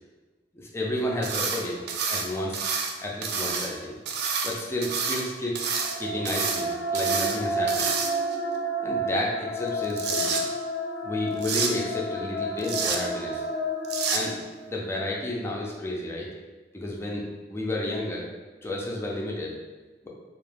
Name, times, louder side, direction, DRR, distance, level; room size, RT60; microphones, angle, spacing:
voice 1, 0.5-1.8 2.1-2.6 3.0-4.0 4.4-7.9 8.8-10.4 11.0-13.4 14.1-14.3 14.7-16.3 16.7-18.3 18.6-19.5 20.0-20.1, left 1 dB, 15° left, -3 dB, 0.4 m, -31 dB
sound 1, 1.2-1.6 1.9-2.9 3.2-3.7 4.1-5.2 5.5-5.9 6.2-6.6 6.9-7.4 7.7-8.3 9.7-10.4 11.4-11.7 12.6-13.0 13.8-14.2, right 5 dB, 60° right, 0.3 m, -28 dB
sound 2, 5.7-14.9, right 1 dB, 90° left, 0.4 m, -31 dB
2.3 x 2.2 x 3.2 m, 1.2 s
head